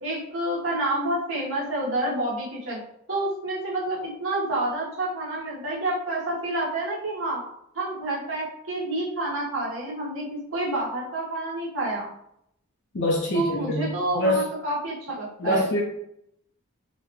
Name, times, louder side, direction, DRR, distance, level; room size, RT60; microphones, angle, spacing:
voice 1, 0.0-2.8 3.1-7.4 7.7-12.1 13.3-15.6, right 1 dB, 65° right, -7 dB, 1.2 m, -28 dB
voice 2, 12.9-14.5 15.4-15.8, left 1 dB, 55° left, -2 dB, 0.5 m, -25 dB
3.7 x 2.1 x 2.9 m, 0.76 s
head